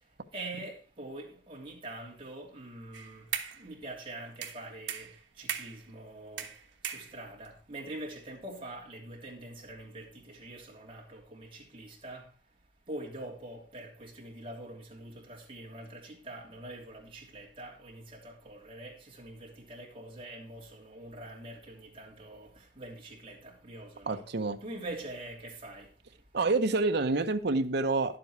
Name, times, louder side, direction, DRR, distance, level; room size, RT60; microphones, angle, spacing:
voice 1, 0.0-24.3 24.6-26.4, right 1 dB, 30° right, 3.1 m, -45 dB
sound 1, 2.9-3.7 4.4-5.9 6.4-7.5, right 8 dB, 80° right, 1.2 m, -38 dB
voice 2, 24.1-24.6 26.3-28.2, right 3 dB, 60° right, 0.8 m, -27 dB
11.0 x 7.8 x 4.6 m
head